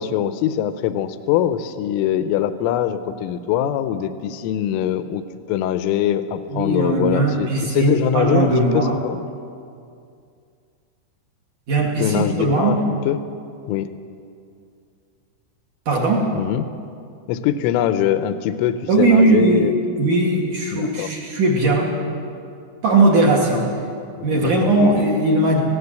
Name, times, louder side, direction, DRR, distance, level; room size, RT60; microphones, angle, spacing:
voice 1, 0.0-5.2 5.5-9.2 12.0-12.8 13.1-13.2 13.7-13.9 16.3-16.7 17.3-19.7 20.7-21.1 24.2-25.0, left 10 dB, 85° left, 11 dB, 3.4 m, -22 dB
voice 2, 6.5-9.0 11.7-12.8 15.9-16.3 18.9-19.7 20.0-21.9 22.8-23.7 24.2-25.6, right 2 dB, 50° right, -2 dB, 3.1 m, -18 dB
19.5 x 16.5 x 8.2 m, 2.4 s
omnidirectional pair, 5.7 m